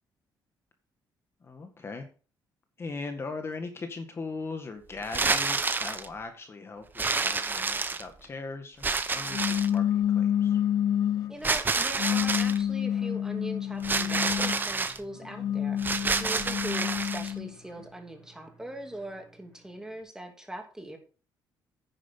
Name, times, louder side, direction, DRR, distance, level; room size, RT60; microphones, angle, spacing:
voice 1, 1.4-2.1 2.8-10.6, left 3 dB, 35° left, 6 dB, 1.8 m, -39 dB
sound 1, 5.0-6.1 7.0-8.2 8.8-9.8 11.4-12.6 13.8-15.0 15.8-17.3, right 4 dB, 25° right, 1.1 m, -28 dB
sound 2, 9.3-11.4 12.0-14.7 15.2-17.5, left 10 dB, 60° left, 0.5 m, -28 dB
sound 3, 10.1-20.0, equal, 10° left, 7.0 m, -56 dB
voice 2, 11.3-15.8 16.2-21.0, right 1 dB, 10° right, 3 dB, 2.8 m, -41 dB
10.0 x 9.9 x 3.8 m, 0.37 s
cardioid pair, 110°, 8 cm